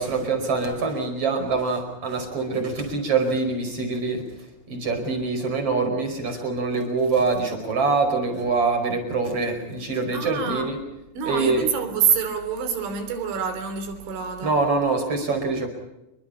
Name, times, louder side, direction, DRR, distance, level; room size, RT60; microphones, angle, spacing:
voice 1, 0.0-4.2 4.7-10.8 11.2-11.6 14.4-15.7, right 4 dB, 30° right, 5.7 m, -24 dB
voice 2, 10.1-10.7 11.2-14.6, right 7 dB, 85° right, 5.7 m, -26 dB
28.5 x 23.5 x 5.6 m
omnidirectional pair, 5.2 m